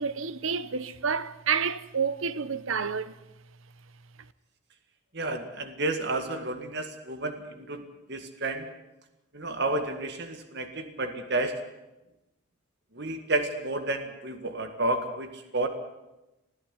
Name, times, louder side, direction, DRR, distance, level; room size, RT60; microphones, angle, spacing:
voice 1, 0.0-3.1, right 6 dB, 65° right, 0.9 m, -29 dB
voice 2, 5.1-7.8 8.1-8.7 9.3-11.6 12.9-15.7, right 2 dB, 50° right, 1.8 m, -31 dB
21.0 x 13.5 x 9.9 m
head